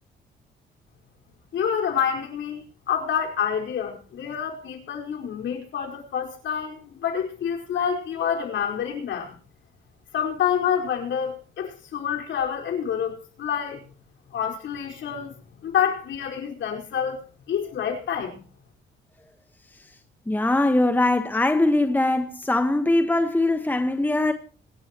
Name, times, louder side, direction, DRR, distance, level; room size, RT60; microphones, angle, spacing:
voice 1, 1.5-9.3 10.1-13.8 14.3-15.3 15.6-17.2 17.5-18.4, left 8 dB, 70° left, 4.9 m, -27 dB
voice 2, 20.3-24.3, left 2 dB, 10° left, 1.3 m, -21 dB
25.0 x 11.5 x 3.0 m
cardioid pair, 90°, 20 cm